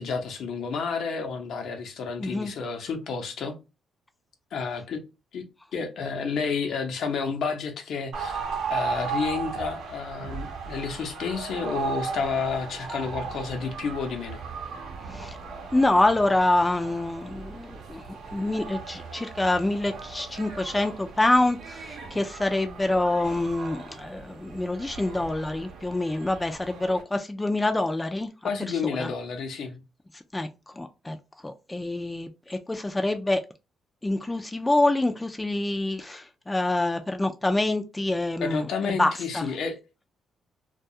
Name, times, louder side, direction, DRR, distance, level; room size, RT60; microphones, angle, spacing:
voice 1, 0.0-3.5 4.5-5.0 5.3-5.4 5.7-14.4 28.4-29.8 38.4-39.8, left 5 dB, 70° left, 0.6 m, -30 dB
voice 2, 2.2-2.5 15.1-15.4 15.7-18.0 18.3-28.3 29.0-29.1 30.3-30.5 30.8-31.2 31.4-33.4 34.0-39.4, left 2 dB, 15° left, 0.3 m, -26 dB
sound 1, 8.1-27.0, right 5 dB, 75° right, 0.7 m, -37 dB
2.3 x 2.3 x 2.7 m
cardioid pair, 90°, 0 cm